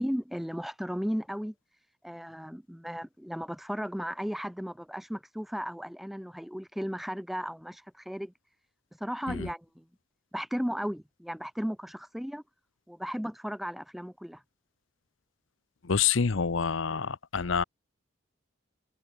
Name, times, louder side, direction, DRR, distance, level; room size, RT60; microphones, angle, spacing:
voice 1, 0.0-1.5 2.0-8.3 9.0-9.8 10.3-12.4 12.9-14.4, equal, ahead, 0.5 m, -35 dB
voice 2, 15.8-17.6, left 6 dB, 75° left, 0.7 m, -27 dB
head